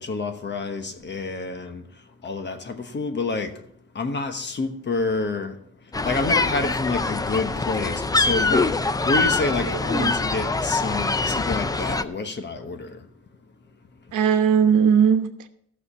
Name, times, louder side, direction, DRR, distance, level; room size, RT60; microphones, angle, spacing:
voice 1, 0.0-3.6 3.9-5.6 6.0-13.1, left 3 dB, 35° left, 1.1 m, -28 dB
sound 1, 5.9-12.0, left 3 dB, 15° left, 0.4 m, -24 dB
voice 2, 9.7-10.1 14.1-15.5, right 7 dB, 80° right, 1.1 m, -19 dB
14.5 x 6.7 x 5.5 m
wide cardioid pair, 150°, 30 cm